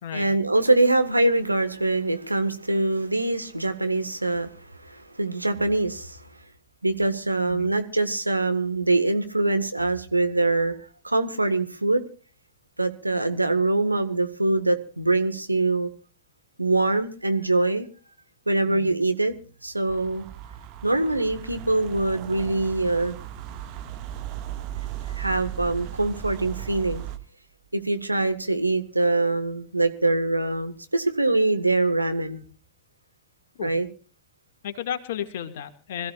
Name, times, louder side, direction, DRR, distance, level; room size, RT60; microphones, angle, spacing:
voice 1, 0.1-6.3 6.8-10.7 11.0-12.0 12.8-15.9 16.6-17.9 18.5-19.3 19.6-20.3 20.8-23.2 25.2-27.0 27.7-32.4 33.6-33.9, right 2 dB, 85° right, 8 dB, 1.6 m, -24 dB
sound 1, 19.9-27.2, right 11 dB, 40° right, 1.9 m, -37 dB
voice 2, 34.6-36.1, left 9 dB, 55° left, 7 dB, 2.1 m, -33 dB
26.0 x 15.0 x 2.5 m, 0.36 s
figure-of-eight pair, 90°, 0 cm